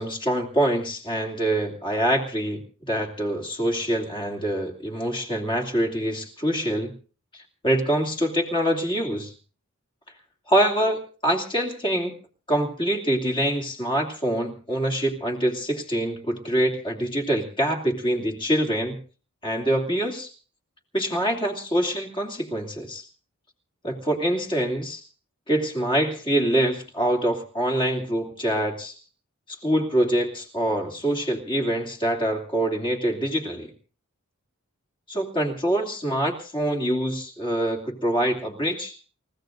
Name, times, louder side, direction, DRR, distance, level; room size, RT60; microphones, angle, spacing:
voice 1, 0.0-6.9 7.6-9.3 10.5-12.1 12.5-19.0 19.4-20.3 20.9-23.1 23.8-25.0 25.5-28.9 29.6-33.7 35.1-38.9, right 1 dB, 25° left, 3 dB, 2.8 m, -25 dB
28.5 x 15.5 x 2.6 m, 0.38 s
head